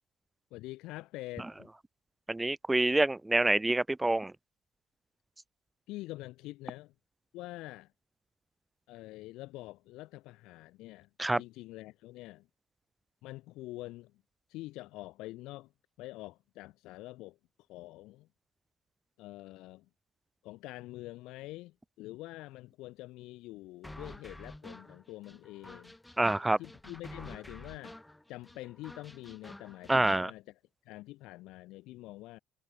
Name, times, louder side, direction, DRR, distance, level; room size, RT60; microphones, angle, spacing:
voice 1, 0.5-1.7 5.9-6.9 7.3-7.9 8.9-11.1 11.4-12.5 13.2-14.2 14.5-15.7 16.0-17.4 17.7-18.3 19.2-19.9 20.4-25.9 26.6-28.0 28.3-30.4 30.8-32.4, left 18 dB, 80° left, 2.4 m, -46 dB
voice 2, 2.3-4.3 11.2-11.4 26.2-26.6 29.9-30.3, right 2 dB, 10° right, 0.9 m, -27 dB
sound 1, 23.8-30.2, left 1 dB, 5° left, 4.8 m, -49 dB
cardioid pair, 105°, 0 cm